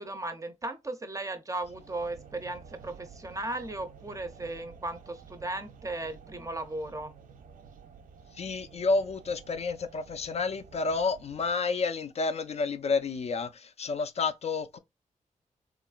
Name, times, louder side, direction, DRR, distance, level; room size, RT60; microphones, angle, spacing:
voice 1, 0.0-7.1, right 2 dB, 25° right, 0.5 m, -36 dB
sound 1, 1.6-11.5, right 6 dB, 80° right, 0.4 m, -52 dB
voice 2, 8.3-14.8, left 4 dB, 50° left, 0.4 m, -30 dB
2.9 x 2.3 x 2.3 m
cardioid pair, 80°, 14 cm